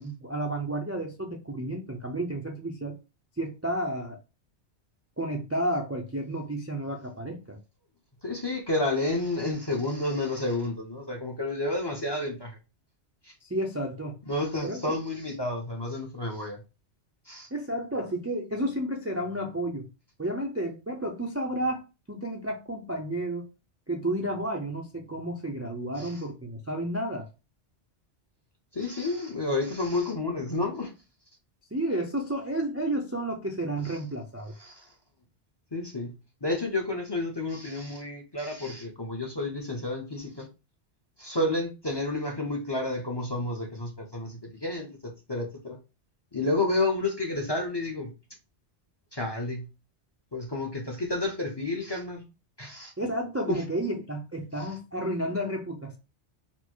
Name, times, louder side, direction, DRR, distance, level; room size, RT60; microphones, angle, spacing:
voice 1, 0.0-3.0 3.4-4.2 5.2-7.6 13.5-14.1 14.6-14.8 17.5-19.9 20.2-23.5 23.9-27.3 31.7-34.5 53.0-56.0, right 1 dB, 20° right, 0.4 m, -31 dB
voice 2, 8.2-12.5 13.2-13.3 14.3-16.6 17.3-17.5 26.0-26.2 28.7-30.9 34.6-34.9 35.7-36.1 36.4-40.5 41.2-45.8 46.3-48.1 49.1-49.7 50.3-52.2 52.6-52.9 53.5-53.6 54.6-54.7, left 2 dB, 25° left, 0.7 m, -30 dB
4.3 x 2.0 x 4.4 m
omnidirectional pair, 1.1 m